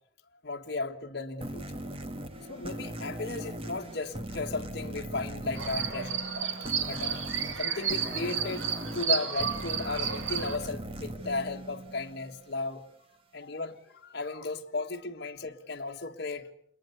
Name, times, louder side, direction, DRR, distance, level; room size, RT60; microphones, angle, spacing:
voice 1, 0.4-1.8 2.5-6.3 6.6-8.7 8.9-12.8 13.3-16.5, left 3 dB, 55° left, 1.6 m, -35 dB
sound 1, 1.4-12.6, right 1 dB, 30° right, 2.0 m, -39 dB
sound 2, 5.5-10.6, right 7 dB, 90° right, 2.0 m, -32 dB
28.0 x 22.0 x 7.0 m
head